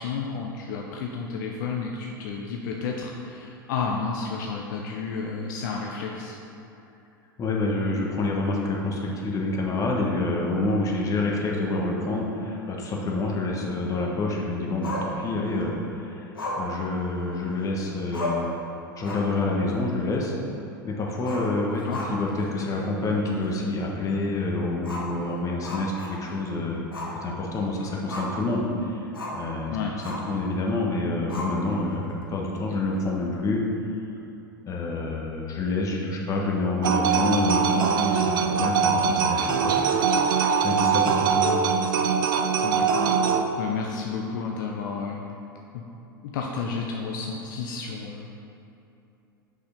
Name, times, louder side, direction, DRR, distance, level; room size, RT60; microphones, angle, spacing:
voice 1, 0.0-6.4 21.7-22.0 29.7-29.9 42.6-43.1 43.6-45.2 45.7-45.8 46.2-48.3, left 5 dB, 60° left, 0 dB, 0.7 m, -31 dB
voice 2, 7.4-18.5 19.0-20.3 20.8-21.8 22.1-26.8 27.1-29.0 29.3-29.8 30.0-33.6 34.6-40.0 40.4-41.5, left 2 dB, 30° left, -1 dB, 1.4 m, -27 dB
Growling, 14.8-15.6 16.4-17.6 17.9-18.0 18.1-18.6 18.9-19.4 19.7-19.8 21.2-22.4 22.7-22.8 23.4-23.5 24.8-26.4 26.9-27.2 27.5-28.5 29.1-29.5 30.0-30.4 31.3-31.9, left 1 dB, 85° left, 1.3 m, -34 dB
sound 1, 36.8-43.4, right 6 dB, 70° right, 0.5 m, -22 dB
6.0 x 5.7 x 5.2 m, 2.8 s
figure-of-eight pair, 90°, 12 cm